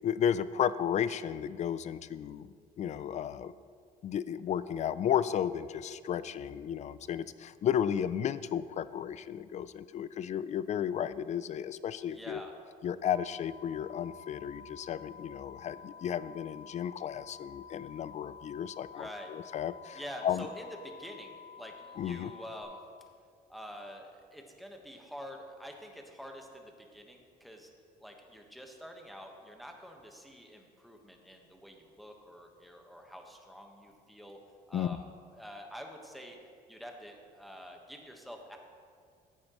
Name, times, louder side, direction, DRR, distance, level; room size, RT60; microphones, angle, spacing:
voice 1, 0.0-3.5 4.0-12.4 12.8-20.5 22.0-22.3 34.7-35.0, left 9 dB, 45° left, 15 dB, 0.4 m, -33 dB
voice 2, 12.1-12.5 18.9-19.3 19.9-22.8 23.5-27.7 28.0-34.4 34.7-35.0 35.3-36.4 36.7-38.6, equal, ahead, 2 dB, 1.3 m, -47 dB
sound 1, 13.0-22.6, left 6 dB, 85° right, 2.3 m, -51 dB
15.0 x 8.6 x 3.1 m, 2.2 s
cardioid pair, 110°, 17 cm